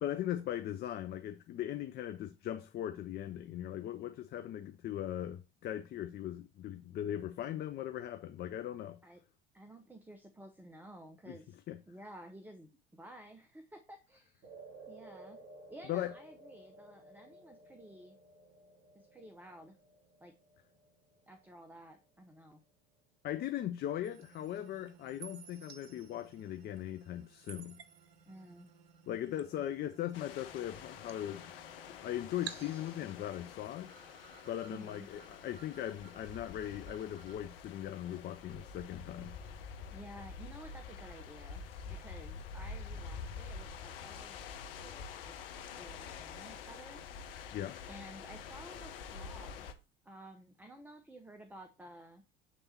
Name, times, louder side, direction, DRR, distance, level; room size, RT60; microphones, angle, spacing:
voice 1, 0.0-9.0 11.3-11.4 11.7-11.8 15.9-16.1 23.2-27.8 29.1-31.5 32.0-33.9 34.5-39.4 47.5-47.8, left 11 dB, 35° left, 0.5 m, -39 dB
voice 2, 9.5-11.6 11.9-14.5 14.9-15.4 15.7-18.2 18.9-19.8 20.2-20.3 21.3-22.6 28.3-28.7 34.7-35.1 39.9-45.5 45.8-47.0 47.9-49.7 50.0-52.2, right 1 dB, 5° right, 0.7 m, -53 dB
sound 1, 14.4-22.9, right 2 dB, 40° right, 3.3 m, -56 dB
sound 2, 24.0-37.4, right 8 dB, 85° right, 0.6 m, -55 dB
sound 3, 30.1-49.7, left 6 dB, 70° left, 0.8 m, -47 dB
7.1 x 3.3 x 4.4 m
figure-of-eight pair, 70°, 30 cm